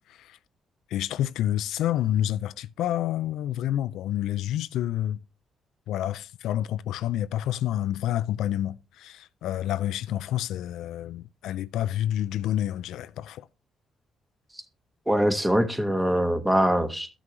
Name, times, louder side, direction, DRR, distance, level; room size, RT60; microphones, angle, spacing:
voice 1, 0.9-5.2 5.9-13.5, left 12 dB, 85° left, 0.4 m, -28 dB
voice 2, 15.1-17.1, equal, 10° right, 1.2 m, -23 dB
12.5 x 6.2 x 2.9 m
cardioid pair, 90°, 0 cm